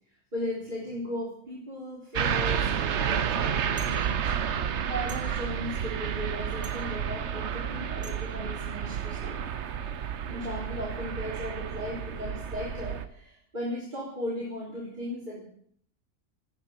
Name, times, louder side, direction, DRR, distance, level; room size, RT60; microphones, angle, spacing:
voice 1, 0.3-4.3 4.9-9.4 10.3-15.4, left 1 dB, 35° right, -5 dB, 4.2 m, -37 dB
sound 1, 2.2-13.1, right 8 dB, 60° right, 1.1 m, -31 dB
sound 2, 3.8-4.0 5.1-5.2 6.6-6.8 8.0-8.1, right 4 dB, 20° right, 2.7 m, -44 dB
18.5 x 6.8 x 9.3 m, 0.64 s
omnidirectional pair, 1.4 m